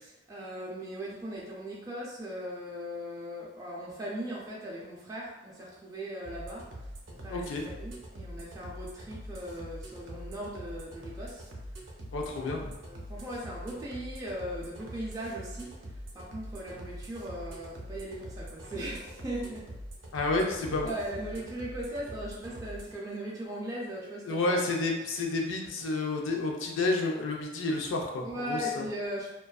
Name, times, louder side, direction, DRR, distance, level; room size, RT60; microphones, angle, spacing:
voice 1, 0.3-6.6 7.1-11.5 12.4-19.7 20.8-24.6 28.2-29.3, equal, 15° right, -5 dB, 0.3 m, -39 dB
sound 1, 6.2-22.9, equal, 70° right, 0.5 m, -44 dB
voice 2, 7.3-7.6 12.1-12.8 20.1-20.9 24.3-28.8, left 2 dB, 80° left, 1 dB, 0.4 m, -30 dB
2.4 x 2.2 x 2.3 m, 1.0 s
head